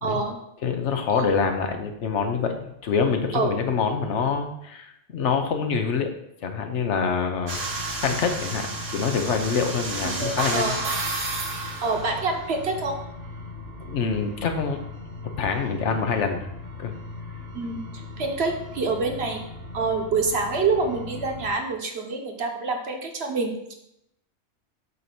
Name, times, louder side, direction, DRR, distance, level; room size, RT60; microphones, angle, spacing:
voice 1, 0.0-0.4 3.3-3.5 10.0-10.8 11.8-13.0 17.5-19.4 19.7-23.7, right 4 dB, 60° right, 3 dB, 1.2 m, -27 dB
voice 2, 0.6-6.1 6.4-10.8 13.8-14.8 15.4-16.5 16.8-16.9, left 5 dB, 75° left, 5 dB, 1.1 m, -26 dB
sound 1, 7.5-21.5, right 1 dB, 85° right, 1.6 m, -34 dB
8.1 x 2.8 x 5.9 m, 0.80 s
omnidirectional pair, 1.2 m